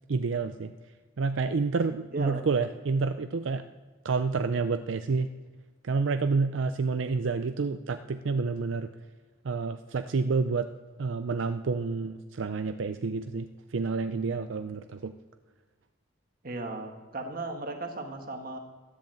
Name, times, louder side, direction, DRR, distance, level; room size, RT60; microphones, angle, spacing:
voice 1, 0.1-0.7 1.2-3.6 4.0-5.3 5.8-8.9 9.4-10.7 11.0-15.1, right 4 dB, 75° right, 10 dB, 0.5 m, -29 dB
voice 2, 2.1-2.4 16.4-18.6, right 2 dB, 45° right, 5 dB, 1.7 m, -36 dB
12.5 x 10.5 x 7.7 m, 1.4 s
head